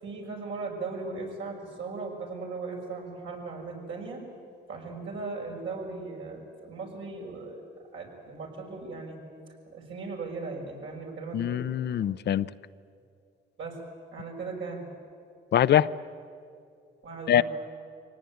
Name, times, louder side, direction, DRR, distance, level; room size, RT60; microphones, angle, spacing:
voice 1, 0.0-4.2 4.7-7.6 7.9-9.2 9.7-11.6 13.6-13.8 14.1-14.9 17.0-17.4, right 3 dB, 70° right, 0 dB, 6.3 m, -38 dB
voice 2, 11.3-12.5 15.5-15.9 17.3-17.4, left 10 dB, 60° left, 15 dB, 0.6 m, -23 dB
24.5 x 18.0 x 9.4 m, 2.3 s
cardioid pair, 90°, 20 cm